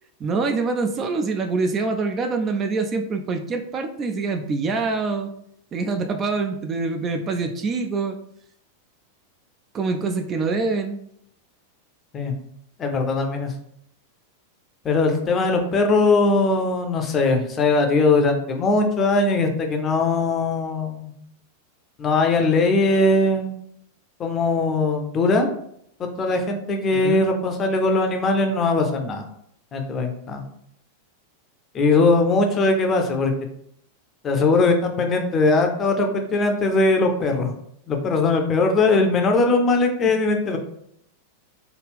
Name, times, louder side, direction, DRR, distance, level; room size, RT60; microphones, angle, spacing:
voice 1, 0.2-5.3 5.7-8.2 9.7-11.0 26.9-27.2 40.0-40.1, right 4 dB, 25° right, 5 dB, 0.3 m, -25 dB
voice 2, 12.8-13.5 14.8-21.1 22.0-23.5 24.2-25.5 26.0-29.2 29.7-30.4 31.7-33.3 34.2-37.5 37.9-40.6, left 3 dB, 25° left, 4 dB, 0.5 m, -20 dB
3.2 x 2.3 x 3.4 m, 0.70 s
figure-of-eight pair, 90°, 0 cm